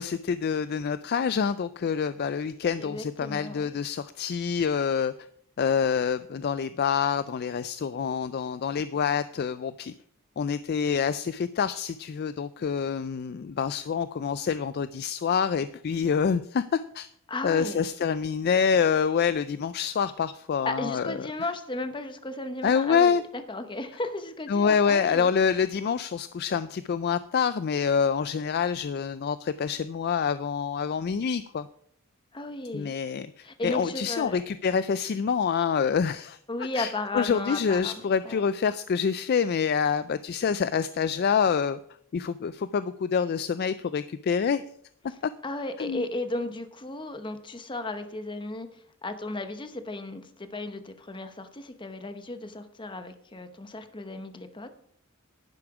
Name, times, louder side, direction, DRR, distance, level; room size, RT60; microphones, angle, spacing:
voice 1, 0.0-5.1 5.6-9.9 10.4-17.1 17.4-21.2 22.6-23.2 24.5-31.7 32.7-41.8 42.1-44.6 45.2-45.3 45.8-46.1, left 6 dB, 45° left, 14 dB, 0.3 m, -26 dB
voice 2, 2.8-3.7 17.3-17.9 20.6-25.3 32.3-32.9 33.4-34.4 36.5-38.4 45.4-48.7 49.0-54.7, left 2 dB, 20° left, 9 dB, 0.9 m, -35 dB
11.0 x 9.9 x 4.8 m, 0.66 s
head